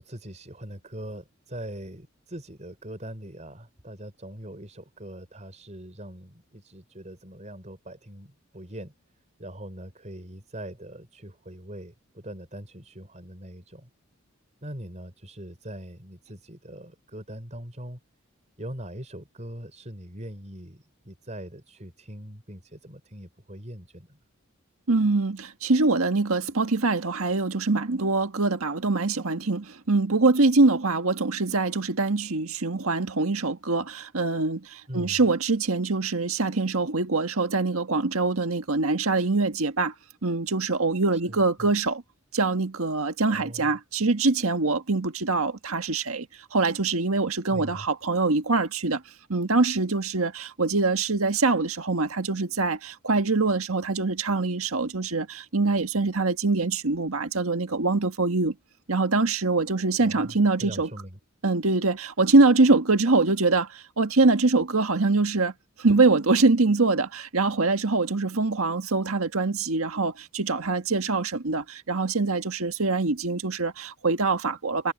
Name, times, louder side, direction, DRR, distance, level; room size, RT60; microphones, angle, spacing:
voice 1, 0.0-8.9 9.4-13.9 14.6-18.0 18.6-24.2 34.9-35.2 41.1-41.7 43.3-43.7 47.5-47.9 60.0-61.2, right 1 dB, 35° right, 4.7 m, -41 dB
voice 2, 24.9-39.9 40.2-42.0 42.3-46.3 46.5-49.0 49.3-58.5 58.9-60.9 61.4-65.5 65.8-74.9, right 3 dB, 80° right, 1.6 m, -24 dB
head